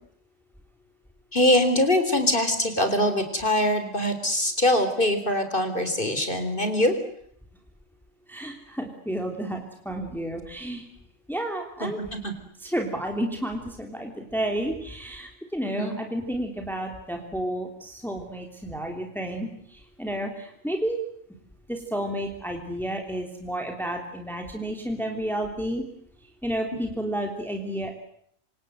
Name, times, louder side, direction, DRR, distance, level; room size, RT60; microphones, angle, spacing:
voice 1, 1.3-6.9 11.8-12.3 15.6-16.0, left 1 dB, 35° left, 8 dB, 4.1 m, -23 dB
voice 2, 8.3-10.8 11.3-12.0 12.6-21.0 21.7-25.8 26.4-27.9, right 1 dB, ahead, 2 dB, 3.2 m, -31 dB
26.5 x 26.5 x 8.0 m, 0.68 s
omnidirectional pair, 1.5 m